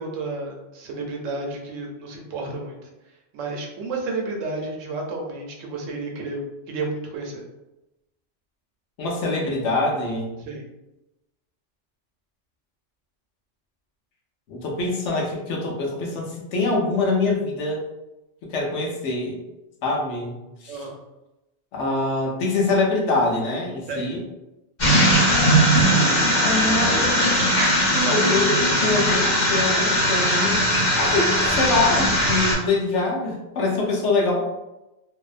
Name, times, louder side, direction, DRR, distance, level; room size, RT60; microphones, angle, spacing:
voice 1, 0.0-2.8 3.3-7.4 10.4-10.6 20.7-21.0 23.9-24.1, right 3 dB, 80° right, 1 dB, 0.9 m, -31 dB
voice 2, 9.0-10.4 14.5-17.8 18.5-19.4 19.8-20.9 21.7-24.2 26.1-26.2 26.4-27.0 27.9-34.4, left 3 dB, 75° left, -1 dB, 0.9 m, -24 dB
sound 1, 24.8-32.5, equal, 50° left, 1.1 m, -19 dB
2.6 x 2.1 x 2.4 m, 0.98 s
omnidirectional pair, 1.3 m